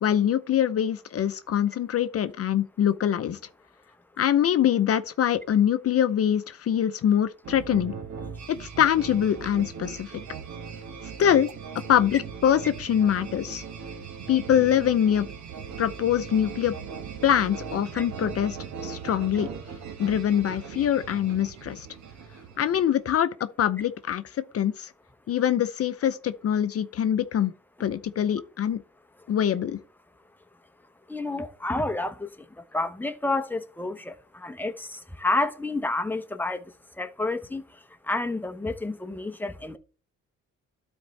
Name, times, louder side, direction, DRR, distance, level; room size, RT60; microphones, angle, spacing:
voice 1, 0.0-3.4 4.2-7.9 8.6-10.1 11.2-11.5 11.9-13.6 14.3-15.3 15.8-16.7 17.2-18.6 18.8-19.5 20.0-21.9 22.6-24.9 25.3-27.5 27.8-28.8 29.3-29.8, left 10 dB, 50° left, 0.6 m, -24 dB
sound 1, 7.4-23.0, right 6 dB, 70° right, 1.3 m, -39 dB
voice 2, 31.1-36.6 37.0-39.8, left 2 dB, 5° left, 0.9 m, -30 dB
12.5 x 4.5 x 3.2 m
cardioid pair, 90°, 30 cm